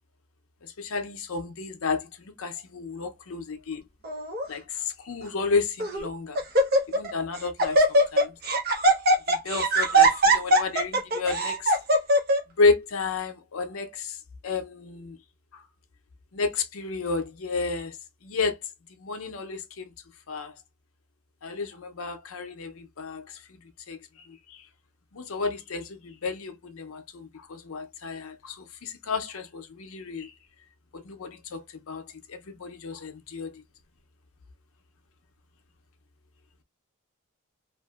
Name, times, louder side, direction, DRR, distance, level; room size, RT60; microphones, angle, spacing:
voice 1, 0.6-3.8 4.5-6.4 6.9-8.3 9.3-11.7 12.6-14.2 14.4-15.2 15.5-15.6 16.3-18.0 18.2-18.6 19.0-19.9 20.3-20.5 21.4-23.4 23.9-24.6 25.1-30.3 30.9-33.6, left 4 dB, 70° left, 0.6 m, -31 dB
Laughter, 4.0-4.4 5.2-5.3 5.8-6.1 6.3-7.1 7.4-12.4, right 1 dB, 45° right, 0.7 m, -21 dB
2.7 x 2.6 x 2.3 m
head